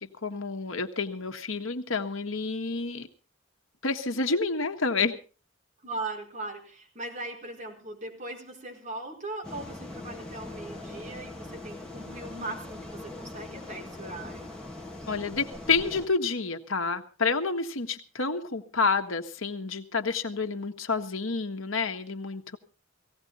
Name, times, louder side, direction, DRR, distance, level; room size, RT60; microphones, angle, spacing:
voice 1, 0.0-3.1 3.8-5.2 15.1-22.6, left 4 dB, 85° left, 6 dB, 1.4 m, -29 dB
voice 2, 5.8-14.5, right 2 dB, 35° right, 0 dB, 4.5 m, -39 dB
sound 1, 9.4-16.1, left 2 dB, 5° left, 2.5 m, -41 dB
18.0 x 16.0 x 4.0 m, 0.35 s
head